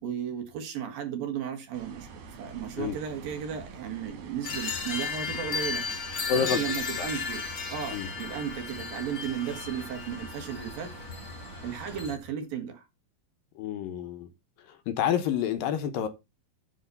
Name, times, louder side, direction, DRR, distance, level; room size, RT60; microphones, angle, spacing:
voice 1, 0.0-5.8 6.3-7.4 7.7-10.9 11.6-12.9, right 8 dB, 65° right, 3.5 m, -35 dB
sound 1, 1.7-12.1, right 5 dB, 85° right, 4.4 m, -47 dB
sound 2, 4.4-12.1, left 5 dB, 45° left, 1.7 m, -35 dB
voice 2, 6.3-6.6 7.0-7.1 7.9-8.1 13.6-14.3 14.7-16.1, left 9 dB, 70° left, 2.5 m, -28 dB
10.0 x 4.2 x 6.9 m
omnidirectional pair, 4.4 m